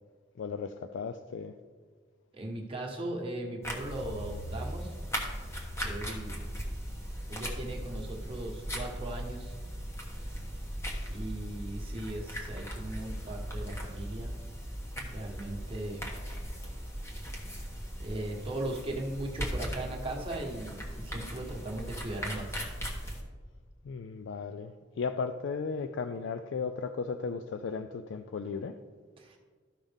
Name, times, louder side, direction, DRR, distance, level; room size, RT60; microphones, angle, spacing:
voice 1, 0.4-1.5 23.8-28.8, left 5 dB, 70° left, 9 dB, 0.4 m, -35 dB
voice 2, 2.3-4.9 5.8-6.5 7.3-9.5 11.1-14.3 14.9-16.1 18.0-22.6 29.2-29.4, right 1 dB, 30° right, -1 dB, 1.4 m, -38 dB
sound 1, 3.6-23.2, equal, 15° left, 1.2 m, -38 dB
13.0 x 5.5 x 3.5 m, 1.5 s
head